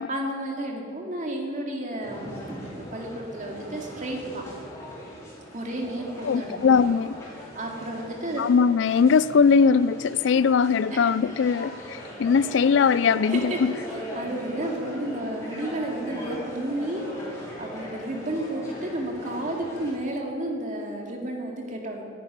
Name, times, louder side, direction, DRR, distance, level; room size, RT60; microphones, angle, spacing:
voice 1, 0.1-4.4 5.5-6.7 7.5-8.4 10.9-11.0 13.2-13.6 13.9-22.1, right 1 dB, 40° right, 1 dB, 2.3 m, -32 dB
sound 1, 2.0-19.9, equal, 15° left, 4.2 m, -39 dB
voice 2, 6.2-7.2 8.4-13.7, left 6 dB, 65° left, 17 dB, 0.4 m, -20 dB
10.5 x 10.5 x 10.0 m, 2.4 s
head